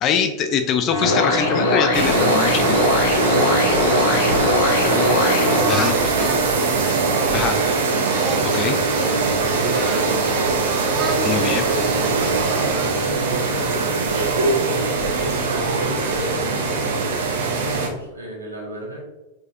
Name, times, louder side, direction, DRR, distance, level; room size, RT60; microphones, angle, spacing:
voice 1, 0.0-2.8 5.7-6.3 7.3-7.6 8.4-8.8 11.2-11.7, left 7 dB, 35° left, 7 dB, 0.4 m, -23 dB
sound 1, 0.9-5.9, left 2 dB, 55° left, 0.9 m, -20 dB
sound 2, 1.9-17.9, right 4 dB, 60° right, 0.8 m, -21 dB
voice 2, 3.0-5.0 5.6-6.5 9.4-10.4 11.1-14.2 15.2-19.0, right 1 dB, 85° right, -4 dB, 1.5 m, -33 dB
Singing, 4.6-7.6 8.1-10.6 10.9-13.5, right 4 dB, 25° right, 0.8 m, -33 dB
5.0 x 4.0 x 2.6 m, 1.1 s
figure-of-eight pair, 90°, 0 cm